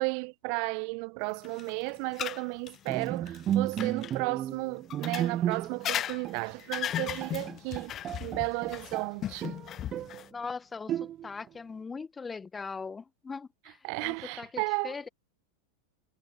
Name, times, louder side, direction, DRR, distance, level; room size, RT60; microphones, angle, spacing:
voice 1, 0.0-7.9 8.2-9.6 13.8-14.9, right 35 dB, 50° right, 1.0 m, -33 dB
sound 1, 1.4-4.1 4.9-10.3, left 11 dB, 35° left, 0.5 m, -37 dB
Bowed string instrument, 2.9-5.9 6.2-6.5 6.9-7.0 7.2-9.1 9.4-10.2 10.9-11.5, right 11 dB, 35° right, 1.4 m, -33 dB
voice 2, 10.3-15.1, left 4 dB, 15° left, 1.1 m, -40 dB
figure-of-eight pair, 90°, 0 cm